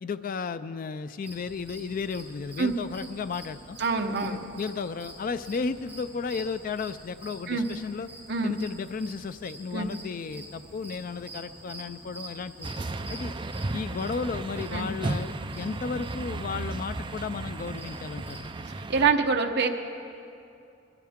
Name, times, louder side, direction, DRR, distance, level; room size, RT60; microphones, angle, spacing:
voice 1, 0.0-3.8 4.2-8.1 8.4-12.7 13.1-13.3 13.7-18.5, left 5 dB, 45° left, 12 dB, 0.3 m, -34 dB
sound 1, 1.2-18.4, right 1 dB, 10° right, 4.3 m, -47 dB
voice 2, 3.8-4.4 7.5-7.7 8.3-8.5 9.7-9.9 14.7-14.9 18.7-19.7, right 4 dB, 55° right, 4 dB, 1.0 m, -25 dB
sound 2, 12.6-19.1, right 2 dB, 25° right, 0.5 m, -34 dB
22.0 x 14.5 x 3.6 m, 2.6 s
head